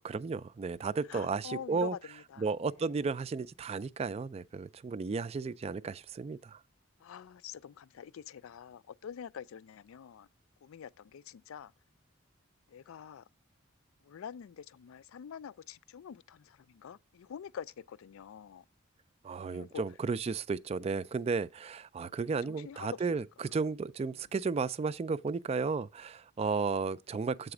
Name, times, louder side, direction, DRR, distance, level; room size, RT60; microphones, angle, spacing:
voice 1, 0.0-1.9 2.4-6.6 19.2-27.5, right 4 dB, 30° right, 0.3 m, -34 dB
voice 2, 1.1-2.4 2.8-2.9 7.0-10.3 10.6-11.7 12.7-13.3 14.0-18.6 19.5-19.8 22.5-23.6, left 7 dB, 85° left, 0.4 m, -46 dB
7.8 x 4.1 x 4.8 m
head